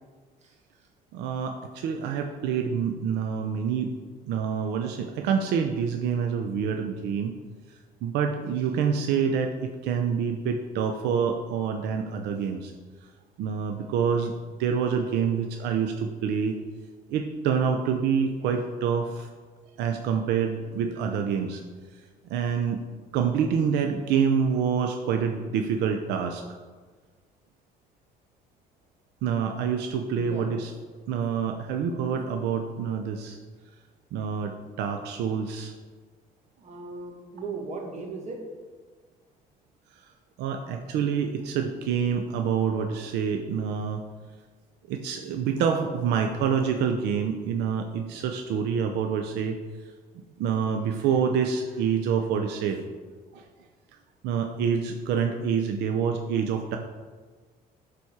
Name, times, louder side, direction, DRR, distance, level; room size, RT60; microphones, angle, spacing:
voice 1, 1.1-3.9 4.3-7.3 8.0-12.7 13.4-14.3 14.6-16.6 17.1-19.3 19.8-21.6 22.3-22.8 23.1-26.4 29.2-30.7 31.1-33.4 34.1-35.7 40.4-44.0 44.9-49.6 50.4-52.8 53.3-53.4 54.2-56.8, right 7 dB, 85° right, 4 dB, 0.7 m, -27 dB
voice 2, 30.1-30.5 36.6-38.4, right 3 dB, 40° right, 1 dB, 1.9 m, -37 dB
11.0 x 4.3 x 4.8 m, 1.4 s
cardioid pair, 110°, 17 cm